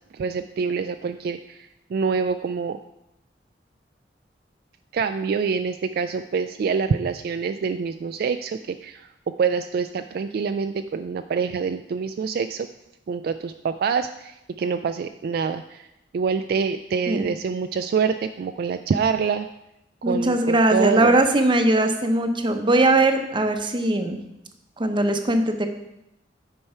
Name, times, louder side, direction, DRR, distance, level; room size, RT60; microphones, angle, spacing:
voice 1, 0.1-1.6 1.9-2.8 4.9-9.1 9.4-12.7 13.1-15.9 16.1-19.5 20.0-21.1, right 5 dB, 60° right, 8 dB, 0.3 m, -26 dB
voice 2, 20.0-24.2 24.8-25.7, right 2 dB, 25° right, 6 dB, 0.7 m, -20 dB
8.7 x 4.6 x 5.5 m, 0.87 s
head